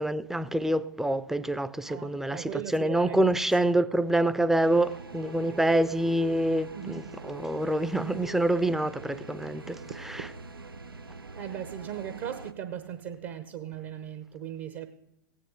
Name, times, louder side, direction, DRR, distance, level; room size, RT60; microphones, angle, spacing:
voice 1, 0.0-10.3, right 1 dB, 5° right, 0.5 m, -26 dB
voice 2, 1.9-3.2 6.7-7.0 11.3-14.9, right 9 dB, 50° right, 1.0 m, -38 dB
sound 1, 4.6-12.5, right 3 dB, 85° right, 0.5 m, -44 dB
16.5 x 10.0 x 5.1 m
figure-of-eight pair, 100°, 12 cm